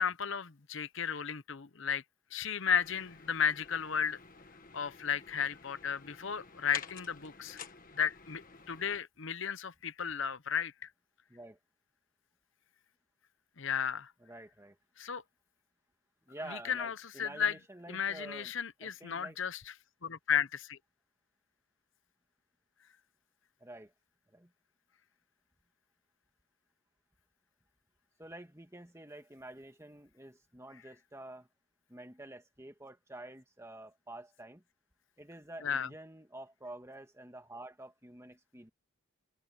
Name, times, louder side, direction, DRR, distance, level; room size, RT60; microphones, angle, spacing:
voice 1, 0.0-2.0 2.3-4.2 4.7-7.6 7.9-8.4 8.7-10.9 13.6-14.1 15.0-15.2 16.5-17.5 17.9-19.7 20.0-20.8 35.6-35.9, left 7 dB, 55° left, 0.8 m, -34 dB
sound 1, 2.7-9.0, left 6 dB, 40° left, 1.5 m, -50 dB
voice 2, 14.2-14.8 16.3-18.5 18.8-19.4 23.6-23.9 24.3-24.5 28.2-31.5 31.9-34.6 35.2-38.7, right 1 dB, 10° right, 1.6 m, -49 dB
head